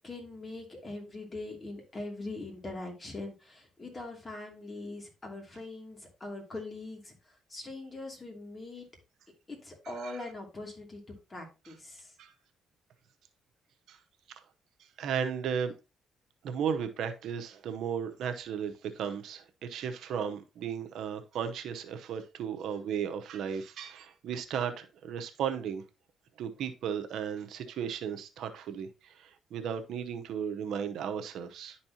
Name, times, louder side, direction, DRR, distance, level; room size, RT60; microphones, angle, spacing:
voice 1, 0.0-7.1 7.5-8.9 9.5-12.1, left 2 dB, 30° left, 2.6 m, -42 dB
voice 2, 9.9-10.2 12.2-12.3 13.9-14.0 15.0-15.7 16.4-25.8 26.4-31.8, right 7 dB, 75° right, 0.8 m, -35 dB
11.0 x 4.3 x 2.8 m
cardioid pair, 90°, 0 cm